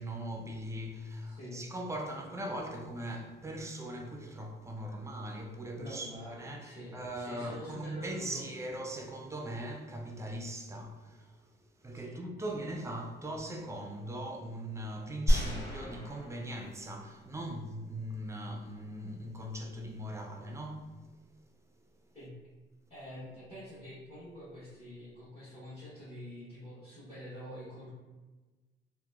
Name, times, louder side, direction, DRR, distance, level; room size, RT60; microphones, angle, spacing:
voice 1, 0.0-11.4 11.8-20.9, right 1 dB, 15° right, 0.3 m, -40 dB
voice 2, 1.3-1.6 5.8-8.7 11.9-12.2 22.1-22.3 22.9-27.9, equal, 35° left, 1.2 m, -46 dB
sound 1, 15.3-17.5, equal, 70° left, 0.9 m, -31 dB
2.8 x 2.1 x 2.3 m
cardioid pair, 90°, 20 cm